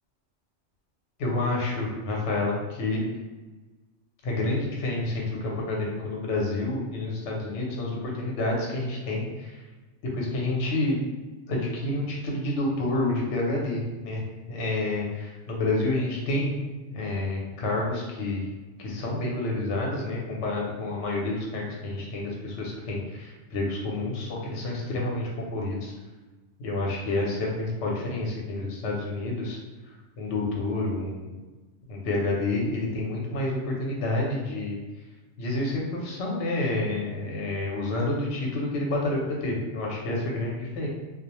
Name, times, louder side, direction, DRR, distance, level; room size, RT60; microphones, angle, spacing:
voice 1, 1.2-3.0 4.2-9.6 10.1-11.0 11.5-14.2 14.5-16.5 16.9-18.5 18.8-25.9 26.6-29.6 30.2-31.4 31.9-34.8 35.4-40.9, left 2 dB, 75° left, -2 dB, 0.9 m, -29 dB
2.3 x 2.0 x 2.9 m, 1.2 s
omnidirectional pair, 1.2 m